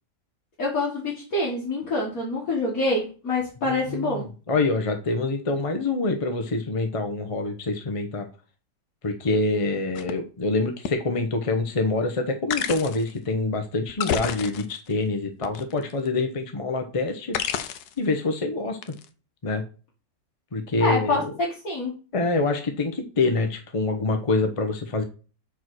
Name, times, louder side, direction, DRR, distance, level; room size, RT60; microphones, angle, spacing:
voice 1, 0.6-4.3 20.8-21.2 21.6-21.9, left 2 dB, 55° left, -5 dB, 2.1 m, -26 dB
voice 2, 3.6-8.3 9.0-17.4 18.0-18.8 19.4-19.6 20.5-21.2 22.1-25.0, left 3 dB, 35° left, 5 dB, 0.5 m, -26 dB
sound 1, 9.9-10.1 10.9-11.0 12.5-13.1 13.9-14.9 15.4-16.1 17.3-18.0 18.8-19.1, left 9 dB, 70° left, 1.2 m, -29 dB
4.9 x 4.7 x 6.1 m, 0.35 s
omnidirectional pair, 1.8 m